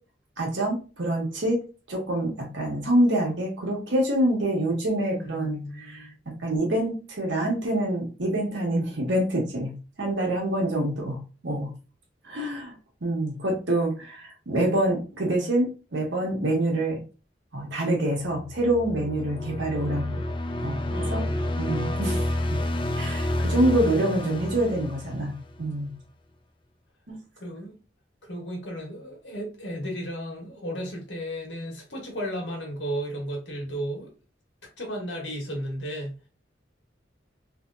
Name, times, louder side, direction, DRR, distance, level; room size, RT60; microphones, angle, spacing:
voice 1, 0.4-1.6 1.9-9.7 10.0-11.7 12.2-12.7 13.0-17.0 17.5-20.2 20.6-21.3 21.6-22.6 22.9-25.9 27.1-27.2, right 1 dB, 90° right, 1.4 m, -26 dB
voice 2, 5.1-6.1 20.9-21.8 27.4-27.7 28.2-34.1 34.8-36.2, equal, 80° left, 1.5 m, -34 dB
sound 1, 18.3-25.7, left 1 dB, 25° left, 0.4 m, -29 dB
3.4 x 2.8 x 2.5 m
head